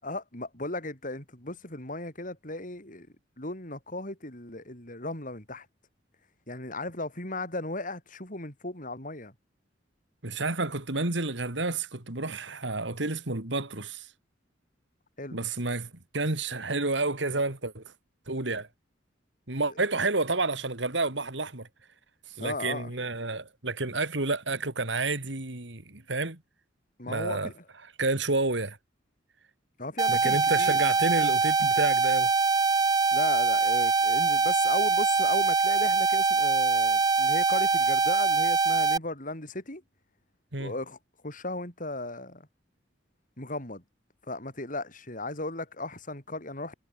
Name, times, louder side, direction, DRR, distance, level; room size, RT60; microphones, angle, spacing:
voice 1, 0.0-3.1 3.4-5.7 6.5-9.3 15.2-15.4 22.4-22.9 27.0-27.6 29.8-30.8 33.1-39.8 40.6-41.0 41.2-42.5 43.4-43.8 44.3-46.7, left 2 dB, 45° left, 7.2 m, -36 dB
voice 2, 10.2-14.1 15.3-17.9 18.3-18.7 19.5-21.7 22.3-26.4 27.1-27.5 28.0-28.8 30.1-32.3 40.5-40.7, right 3 dB, 70° right, 2.9 m, -30 dB
sound 1, 30.0-39.0, right 4 dB, 20° right, 0.5 m, -23 dB
head